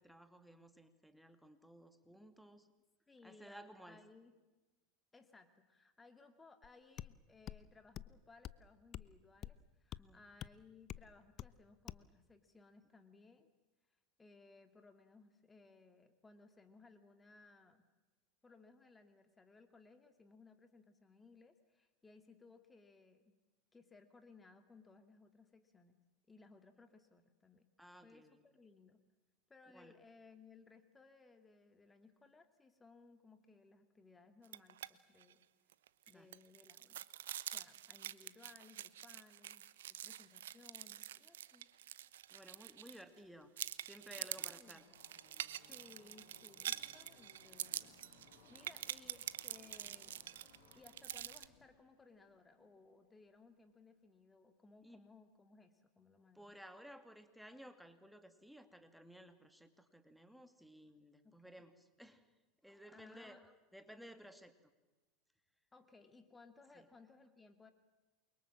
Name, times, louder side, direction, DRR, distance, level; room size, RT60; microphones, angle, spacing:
voice 1, 0.0-2.7 3.2-4.0 10.0-10.2 27.8-28.4 29.7-29.9 36.1-36.3 42.3-43.5 43.8-44.8 54.8-55.0 56.3-62.3 62.6-64.5 66.7-66.9, equal, ahead, 8 dB, 2.4 m, -57 dB
voice 2, 3.1-4.4 5.1-13.5 14.2-17.8 18.4-23.4 23.7-27.7 28.0-29.0 29.5-35.4 36.1-37.0 37.5-41.7 44.2-45.0 45.7-50.2 50.7-56.6 61.2-61.7 62.9-63.4 65.7-67.7, left 3 dB, 15° left, 8 dB, 2.3 m, -63 dB
sound 1, 6.6-6.7 7.0-7.1 7.5-7.6 8.0-8.2 8.4-8.6 8.9-9.1 9.4-9.6 9.9-10.0 10.4-10.5 10.9-11.1 11.4-11.5 11.9-12.1, left 12 dB, 45° left, 0.8 m, -47 dB
sound 2, 34.4-34.9 35.2-35.3 35.7-43.2 43.6-51.5, right 12 dB, 75° right, 0.9 m, -46 dB
Car passing by / Race car auto racing, 42.9-43.0 43.1-53.7, left 4 dB, 65° left, 7.3 m, -67 dB
29.0 x 24.0 x 7.5 m, 1.1 s
hypercardioid pair, 85°, 0 cm